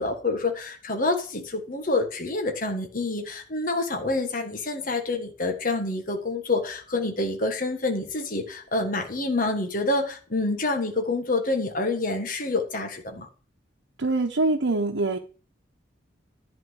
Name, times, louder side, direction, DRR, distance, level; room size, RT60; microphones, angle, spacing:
voice 1, 0.0-13.3, left 2 dB, 45° left, 4 dB, 1.5 m, -27 dB
voice 2, 14.0-15.2, right 2 dB, 90° right, 1 dB, 0.9 m, -24 dB
11.0 x 4.4 x 7.9 m, 0.38 s
head